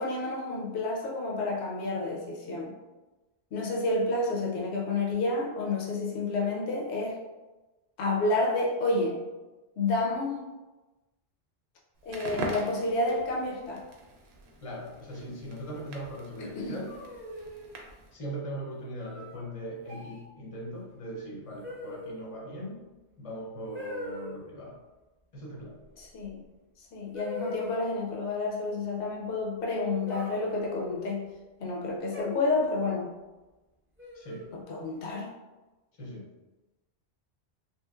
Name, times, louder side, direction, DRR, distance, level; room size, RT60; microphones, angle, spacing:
voice 1, 0.0-2.8 3.5-7.2 8.0-9.2 9.8-10.4 12.1-13.8 16.4-16.8 26.0-26.4 26.8-31.3 31.6-33.1 34.5-35.3, left 2 dB, 75° left, -2 dB, 0.9 m, -30 dB
Crackle, 12.0-18.1, right 2 dB, 70° right, 0.8 m, -42 dB
voice 2, 14.6-17.0 18.1-22.9 23.2-24.8 25.3-25.8 34.1-34.5 36.0-36.3, equal, 40° left, -2 dB, 0.6 m, -40 dB
sound 1, 16.9-17.7 19.0-19.4 19.9-20.2 21.6-22.3 23.7-24.3 26.3-26.4 27.1-28.1 30.1-31.2 32.1-32.8 34.0-34.6, left 1 dB, 15° right, 0.5 m, -39 dB
3.0 x 2.9 x 2.3 m, 1.1 s
omnidirectional pair, 1.2 m